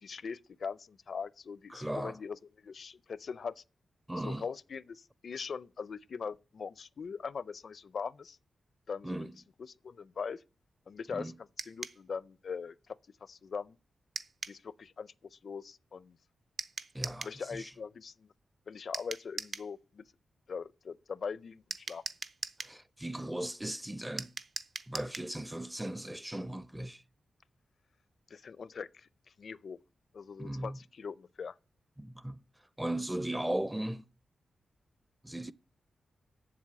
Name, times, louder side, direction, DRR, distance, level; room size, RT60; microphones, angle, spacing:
voice 1, 0.0-3.6 4.2-8.4 8.9-9.3 9.6-10.4 10.9-11.3 11.7-13.0 13.2-13.8 14.5-16.2 17.2-18.3 18.7-20.0 20.5-22.0 28.3-29.1 29.4-29.8 30.1-31.6, left 5 dB, 60° left, 0.5 m, -41 dB
voice 2, 1.7-2.2 4.1-4.4 9.0-9.3 11.1-11.3 16.9-17.7 22.6-24.3 24.9-27.0 30.4-30.8 32.0-32.4 32.8-34.1 35.2-35.5, right 1 dB, 10° right, 0.5 m, -37 dB
sound 1, 11.6-12.0 14.2-14.6 16.6-17.4 18.9-19.7 21.7-22.8 24.2-25.3, right 5 dB, 55° right, 0.8 m, -40 dB
7.5 x 7.3 x 8.5 m
wide cardioid pair, 100°, 0 cm